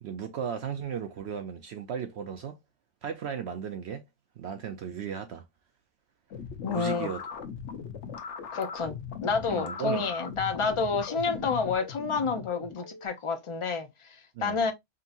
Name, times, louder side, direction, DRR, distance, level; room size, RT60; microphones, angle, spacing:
voice 1, 0.0-2.6 3.0-4.0 4.4-5.5 6.7-7.3 9.5-10.1 14.3-14.6, right 8 dB, 65° right, 0.8 m, -35 dB
sound 1, 6.3-13.1, left 6 dB, 65° left, 1.1 m, -40 dB
voice 2, 6.6-7.1 8.5-14.7, left 5 dB, 35° left, 0.5 m, -29 dB
5.3 x 2.8 x 2.5 m
omnidirectional pair, 1.3 m